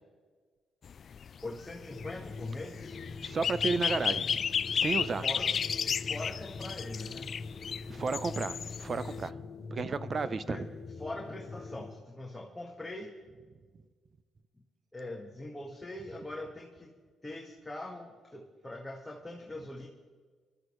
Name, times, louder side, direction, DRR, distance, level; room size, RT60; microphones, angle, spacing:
sound 1, 0.9-9.3, left 7 dB, 50° left, 0.3 m, -33 dB
voice 1, 1.4-2.9 5.2-7.3 10.2-10.7 11.0-13.1 14.9-16.9 17.2-19.9, left 1 dB, 10° left, -1 dB, 1.7 m, -42 dB
sound 2, 1.7-12.0, left 4 dB, 35° left, 0.9 m, -43 dB
voice 2, 3.2-4.4 4.7-5.3 7.9-9.3 9.7-10.7, right 4 dB, 40° right, 14 dB, 0.7 m, -33 dB
23.0 x 12.5 x 3.2 m, 1.5 s
cardioid pair, 90°, 0 cm